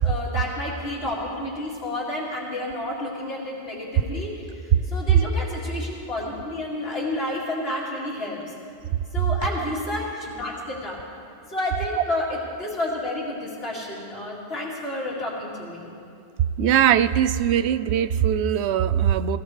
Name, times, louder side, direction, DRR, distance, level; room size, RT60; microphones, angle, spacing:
voice 1, 0.0-8.4 9.1-11.0 11.5-16.0, left 1 dB, 70° left, -5 dB, 2.7 m, -30 dB
voice 2, 16.6-19.4, right 9 dB, 85° right, 14 dB, 0.9 m, -21 dB
19.5 x 17.5 x 3.3 m, 2.5 s
omnidirectional pair, 1.1 m